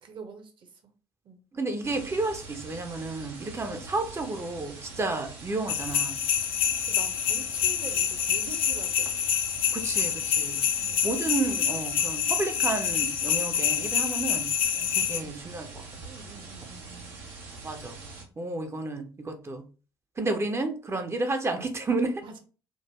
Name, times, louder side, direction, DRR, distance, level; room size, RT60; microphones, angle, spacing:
voice 1, 0.0-0.7 1.2-1.4 6.9-9.1 10.8-11.0 14.7-15.3 16.0-17.1 22.2-22.4, right 4 dB, 45° right, 0.8 m, -45 dB
voice 2, 1.5-6.2 9.7-10.6 11.0-14.5 15.0-15.8 17.6-18.0 18.4-19.7 20.2-22.2, right 3 dB, 25° right, 0.6 m, -31 dB
sound 1, 1.8-18.2, right 3 dB, 75° right, 0.7 m, -44 dB
sound 2, 5.7-15.2, left 9 dB, 50° left, 0.4 m, -27 dB
3.7 x 2.1 x 2.9 m
figure-of-eight pair, 50°, 12 cm